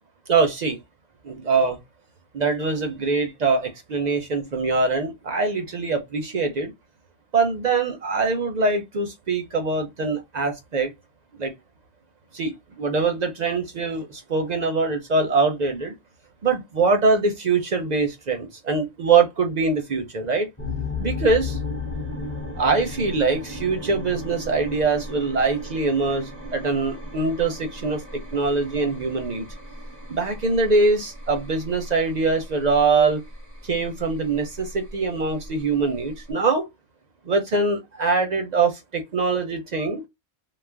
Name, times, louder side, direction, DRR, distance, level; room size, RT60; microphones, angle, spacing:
voice 1, 0.3-0.8 1.2-1.8 2.3-6.7 7.3-10.9 11.4-11.5 12.3-15.9 16.4-20.5 21.0-21.6 22.6-28.0 28.3-29.4 30.1-33.2 33.7-36.7 37.3-40.0, right 4 dB, 50° right, 0.6 m, -23 dB
sound 1, 20.6-36.3, left 2 dB, 15° left, 0.7 m, -35 dB
2.4 x 2.1 x 3.2 m
omnidirectional pair, 1.1 m